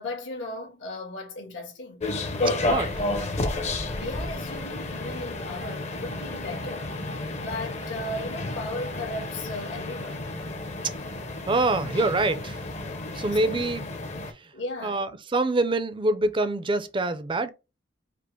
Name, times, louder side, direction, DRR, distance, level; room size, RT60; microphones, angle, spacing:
voice 1, 0.0-2.1 3.9-10.3 13.4-13.6 14.5-15.1, left 2 dB, 75° left, 1.6 m, -36 dB
sound 1, 2.0-14.3, left 2 dB, 40° left, 0.7 m, -31 dB
voice 2, 2.6-2.9 10.8-10.9 11.5-12.6 13.1-13.9 14.8-17.5, right 2 dB, 25° right, 0.5 m, -25 dB
5.0 x 2.0 x 4.6 m
head